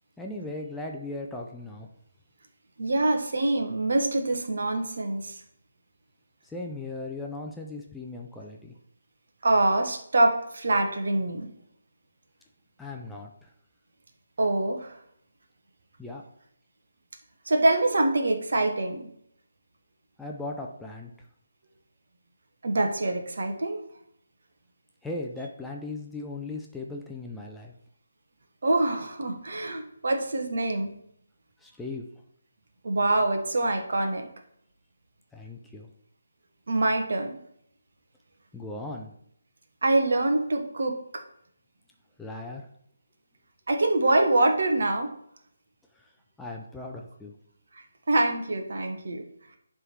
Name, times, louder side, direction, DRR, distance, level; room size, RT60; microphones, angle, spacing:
voice 1, 0.2-1.9 6.4-8.7 12.8-13.3 16.0-16.2 20.2-21.1 25.0-27.7 31.6-32.1 35.3-35.9 38.5-39.1 42.2-42.6 46.4-47.3, left 2 dB, 5° left, -1 dB, 0.6 m, -37 dB
voice 2, 2.8-5.4 9.4-11.5 14.4-15.0 17.4-19.1 22.6-23.8 28.6-30.9 32.8-34.3 36.7-37.3 39.8-41.0 43.7-45.1 47.7-49.2, right 2 dB, 55° right, 4 dB, 1.3 m, -25 dB
11.0 x 3.7 x 4.6 m, 0.69 s
figure-of-eight pair, 145°, 0 cm